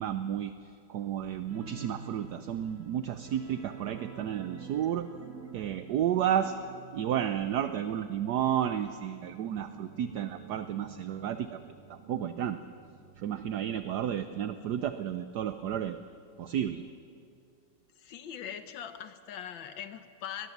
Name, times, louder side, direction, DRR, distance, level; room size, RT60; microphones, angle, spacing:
voice 1, 0.0-5.1 5.5-6.6 6.9-12.6 13.2-16.0 16.4-16.8, right 10 dB, 65° right, 10 dB, 1.1 m, -32 dB
sound 1, 1.5-14.7 15.0-15.2 15.6-15.7, right 6 dB, 45° right, 1.5 m, -49 dB
voice 2, 18.0-20.5, left 9 dB, 75° left, 9 dB, 1.8 m, -41 dB
21.5 x 19.0 x 7.2 m, 2.4 s
omnidirectional pair, 2.1 m